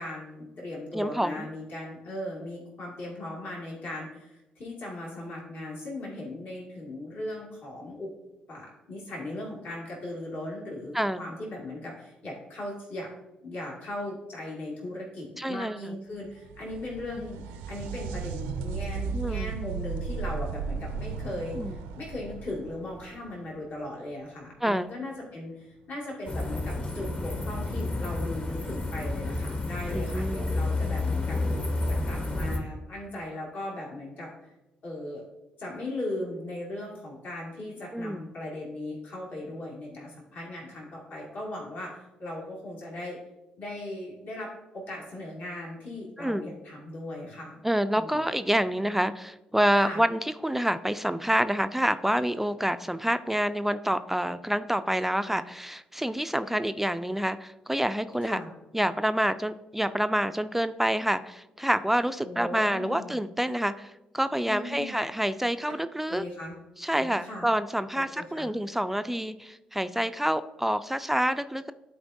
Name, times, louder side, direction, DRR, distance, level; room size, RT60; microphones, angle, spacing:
voice 1, 0.0-8.1 8.5-13.1 13.4-31.6 31.9-34.5 34.8-35.2 35.6-43.2 43.6-47.6 47.9-48.2 49.8-50.0 58.2-58.5 62.2-63.2 64.5-65.0 66.1-66.5 67.0-67.5 67.9-68.5, left 1 dB, 60° left, -4 dB, 2.2 m, -38 dB
voice 2, 0.9-1.5 10.9-11.2 15.4-15.8 17.2-17.3 19.1-19.5 21.6-21.7 24.6-24.9 30.1-30.5 37.9-38.2 46.2-46.4 47.6-58.4 58.7-66.2 66.8-71.7, equal, 5° right, 11 dB, 0.3 m, -27 dB
sound 1, 16.2-23.8 27.2-27.3 28.3-28.4, right 5 dB, 80° right, 0.5 m, -35 dB
sound 2, 26.3-32.6, left 2 dB, 35° left, 1.2 m, -30 dB
11.0 x 4.5 x 2.7 m, 0.97 s
hypercardioid pair, 50°, 4 cm